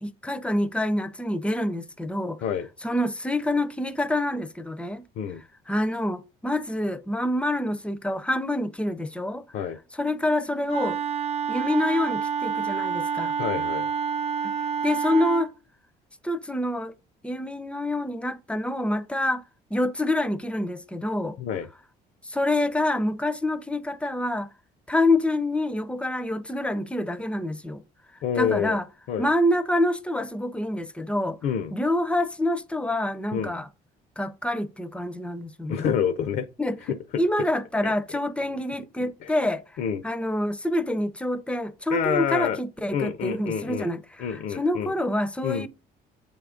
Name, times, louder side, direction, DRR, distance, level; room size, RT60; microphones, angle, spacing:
voice 1, 0.0-2.4 2.8-5.0 5.7-9.5 10.0-11.0 11.5-13.3 14.4-14.5 14.8-15.5 16.2-16.9 17.2-19.4 19.7-21.4 22.3-24.5 24.9-27.8 28.4-28.8 29.2-31.4 31.7-33.7 34.2-35.9 36.6-36.8 37.2-39.6 40.0-44.0 44.3-45.7, left 1 dB, 5° left, 0.5 m, -26 dB
Wind instrument woodwind instrument, 10.7-15.5, right 7 dB, 40° right, 0.6 m, -28 dB
voice 2, 13.4-13.9 21.4-21.7 28.2-28.8 29.1-29.3 31.4-31.8 33.3-33.5 35.7-36.5 36.9-37.2 37.8-38.2 39.0-39.4 39.8-40.0 41.9-42.6 42.9-43.9 44.2-44.9 45.4-45.7, left 8 dB, 65° left, 0.5 m, -28 dB
7.4 x 3.5 x 3.7 m
cardioid pair, 110°, 17 cm